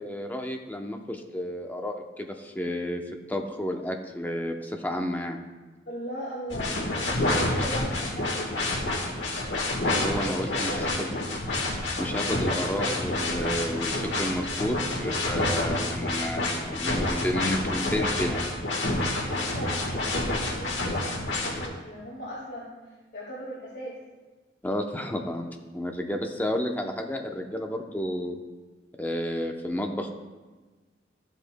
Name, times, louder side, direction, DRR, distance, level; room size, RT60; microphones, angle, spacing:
voice 1, 0.0-3.0 3.3-5.5 9.8-11.1 12.0-18.4 24.6-28.4 29.0-30.1, left 1 dB, 10° left, 3 dB, 0.7 m, -31 dB
voice 2, 5.9-8.5 10.2-11.2 19.3-23.9, equal, 65° left, -6 dB, 2.0 m, -38 dB
sound 1, 6.5-21.7, left 2 dB, 85° left, 1.4 m, -28 dB
13.5 x 8.0 x 2.2 m, 1.3 s
head